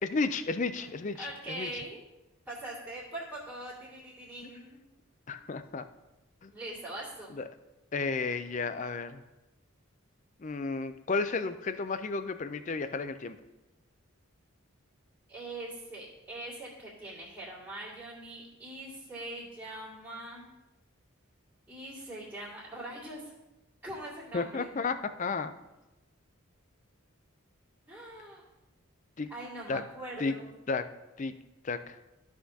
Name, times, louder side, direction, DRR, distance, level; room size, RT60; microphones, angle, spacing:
voice 1, 0.0-1.7 5.3-5.9 6.4-6.5 7.3-7.5 7.9-9.2 10.4-13.4 24.3-25.5 29.2-29.3 29.7-29.8 30.2-30.4 30.7-30.9 31.2-31.3 31.6-32.0, left 4 dB, 35° left, 11 dB, 0.4 m, -32 dB
voice 2, 1.2-2.0 2.5-4.8 5.3-5.6 6.5-7.4 15.3-20.5 21.7-23.3 23.8-24.7 27.9-28.4 29.3-30.5, right 1 dB, 10° right, -13 dB, 2.1 m, -42 dB
14.0 x 5.8 x 2.8 m, 1.0 s
head